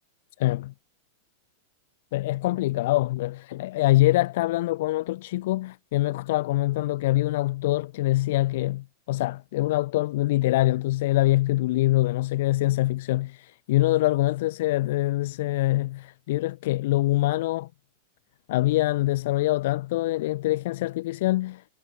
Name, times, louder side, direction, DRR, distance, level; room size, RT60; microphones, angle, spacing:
voice 1, 0.4-0.7 2.1-17.7 18.5-21.8, left 17 dB, 60° left, 0.7 m, -24 dB
hypercardioid pair, 95°, 0 cm